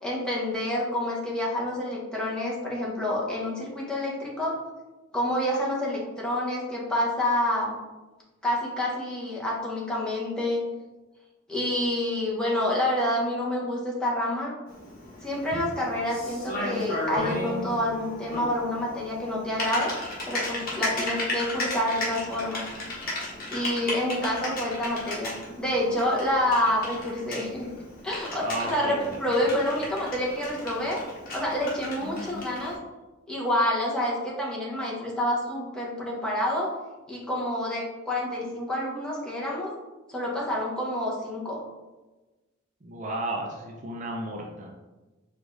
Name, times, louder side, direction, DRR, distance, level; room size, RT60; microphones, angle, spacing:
voice 1, 0.0-4.5 5.1-7.8 8.4-10.6 11.5-14.5 15.2-19.9 20.3-22.6 23.5-27.7 28.0-31.0 31.3-32.7 33.3-36.7 37.1-39.7 40.1-41.6, left 1 dB, 5° left, -5 dB, 0.8 m, -28 dB
Typing, 14.7-32.8, left 1 dB, 45° left, 1.2 m, -35 dB
sound 1, 17.2-25.3 25.7-25.8, equal, 70° left, 0.5 m, -45 dB
voice 2, 28.4-29.1 29.4-29.6 42.8-44.7, right 1 dB, 35° right, 0 dB, 0.4 m, -33 dB
4.7 x 2.4 x 3.8 m, 1.2 s
head